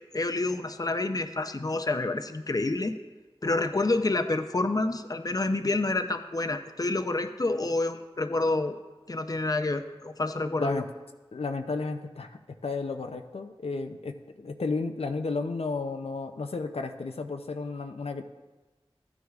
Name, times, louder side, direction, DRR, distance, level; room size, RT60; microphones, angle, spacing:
voice 1, 0.1-2.9 3.4-8.8 9.1-10.8, left 2 dB, 40° left, 8 dB, 0.6 m, -28 dB
voice 2, 11.3-18.2, left 3 dB, 85° left, 6 dB, 0.5 m, -33 dB
14.0 x 9.5 x 2.4 m, 1.2 s
wide cardioid pair, 50°, 10 cm